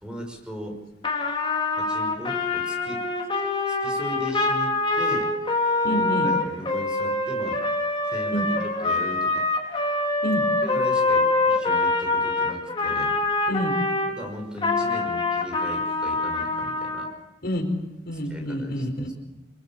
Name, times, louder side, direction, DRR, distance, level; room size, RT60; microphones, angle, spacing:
voice 1, 0.0-0.8 1.7-3.0 3.7-5.5 5.8-7.6 8.1-9.5 10.6-13.2 14.1-17.1 18.3-19.1, equal, 5° right, 2 dB, 5.6 m, -37 dB
Trumpet, 1.0-14.1 14.6-17.1, left 3 dB, 30° left, 3.9 m, -25 dB
voice 2, 5.8-6.3 8.3-8.5 10.2-10.4 13.5-13.8 17.4-19.1, left 1 dB, 60° left, 4 dB, 4.8 m, -28 dB
27.5 x 22.5 x 7.4 m, 0.98 s
head